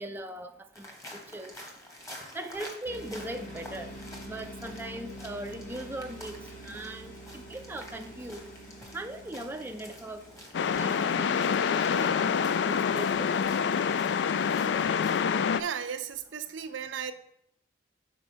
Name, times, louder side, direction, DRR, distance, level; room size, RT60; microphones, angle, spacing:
voice 1, 0.0-1.5 2.3-4.0 4.3-8.4 8.9-10.2 10.6-13.3, right 1 dB, 10° right, 0.4 m, -40 dB
sound 1, 0.7-15.4, left 1 dB, 20° left, 1.2 m, -49 dB
sound 2, 2.8-10.5, right 1 dB, 45° left, 1.8 m, -46 dB
sound 3, 10.5-15.6, left 6 dB, 65° left, 0.3 m, -26 dB
voice 2, 15.6-17.1, right 7 dB, 90° right, 0.6 m, -35 dB
6.0 x 4.3 x 5.6 m
head